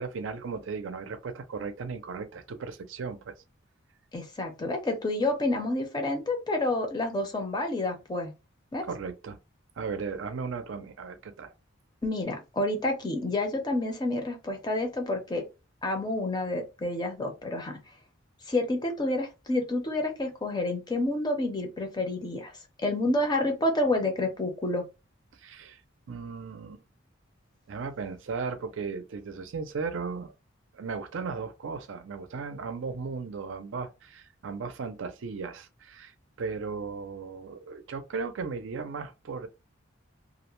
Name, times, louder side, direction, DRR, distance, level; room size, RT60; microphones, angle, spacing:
voice 1, 0.0-3.3 8.8-9.4 9.8-11.5 25.4-25.8 26.1-26.8 27.7-30.3 30.7-39.5, right 5 dB, 65° right, 0.4 m, -36 dB
voice 2, 4.1-8.3 8.7-8.8 12.0-15.4 15.8-17.8 18.5-22.5 22.8-24.8, left 2 dB, 20° left, 0.6 m, -29 dB
2.4 x 2.1 x 2.9 m
head